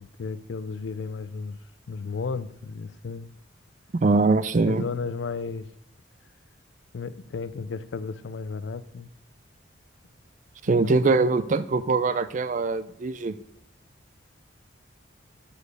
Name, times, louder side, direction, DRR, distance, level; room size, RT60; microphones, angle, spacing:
voice 1, 0.0-1.6 1.9-3.3 4.7-5.7 6.9-9.1 10.8-11.1, left 5 dB, 65° left, 0.4 m, -33 dB
voice 2, 3.9-4.8 10.6-13.4, right 3 dB, 40° right, 0.4 m, -22 dB
7.1 x 6.5 x 6.5 m
head